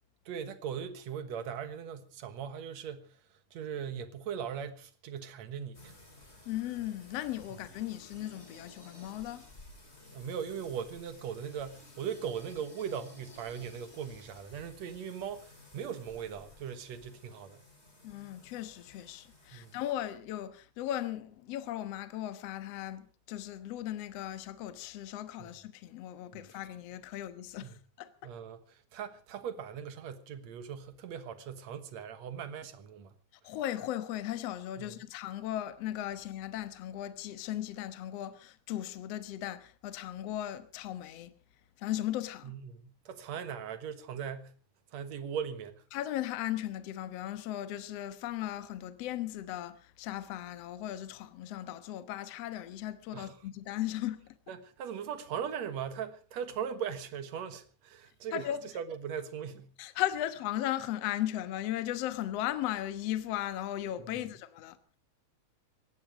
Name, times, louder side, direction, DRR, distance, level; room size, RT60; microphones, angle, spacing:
voice 1, 0.3-3.2 3.5-5.9 10.1-17.7 19.5-19.8 25.4-25.5 26.3-26.4 27.6-27.8 28.2-33.1 34.8-35.0 42.4-44.5 44.9-45.8 53.1-53.4 54.5-59.7 64.1-64.2, right 8 dB, 60° right, 2.3 m, -39 dB
sound 1, 5.7-19.9, left 2 dB, 20° left, 3.8 m, -55 dB
voice 2, 6.5-9.5 18.0-28.1 33.4-41.3 41.8-42.5 45.9-54.4 58.3-58.6 59.8-64.8, left 13 dB, 60° left, 1.9 m, -37 dB
18.5 x 15.5 x 5.0 m
omnidirectional pair, 3.8 m